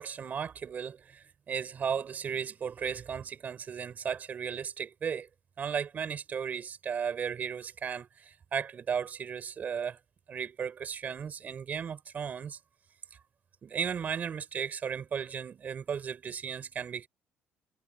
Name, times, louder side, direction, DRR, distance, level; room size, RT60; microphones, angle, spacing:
voice 1, 0.0-5.3 5.6-10.0 10.3-12.6 13.6-17.1, right 7 dB, 40° right, 5.6 m, -35 dB
cardioid pair, 130°, 4 cm